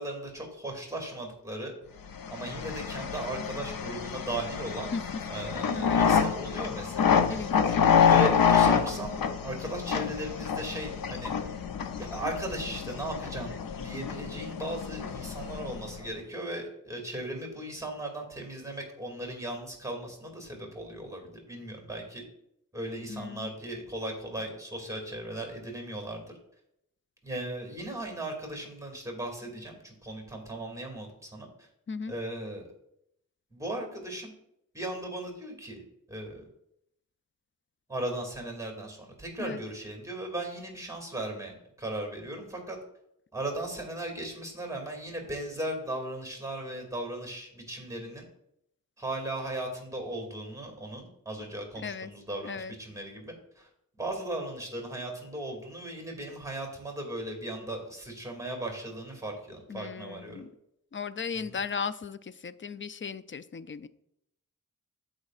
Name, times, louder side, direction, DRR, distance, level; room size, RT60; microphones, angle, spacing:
voice 1, 0.0-1.7 2.3-4.9 5.3-7.8 8.0-9.1 9.4-11.3 12.0-22.2 22.7-26.3 27.2-31.7 32.1-32.7 33.5-34.3 34.7-36.4 37.9-42.8 43.3-48.2 49.0-53.7 54.0-60.5 61.3-61.6, right 1 dB, 10° right, 2 dB, 2.3 m, -37 dB
sound 1, 2.2-16.0, left 7 dB, 85° left, 0.6 m, -27 dB
voice 2, 7.3-8.3 23.1-23.5 31.9-32.1 39.4-39.6 51.8-52.1 52.4-52.7 59.7-60.5 60.9-63.9, left 5 dB, 35° left, 14 dB, 0.5 m, -36 dB
15.0 x 5.2 x 2.4 m, 0.77 s
cardioid pair, 55°, 33 cm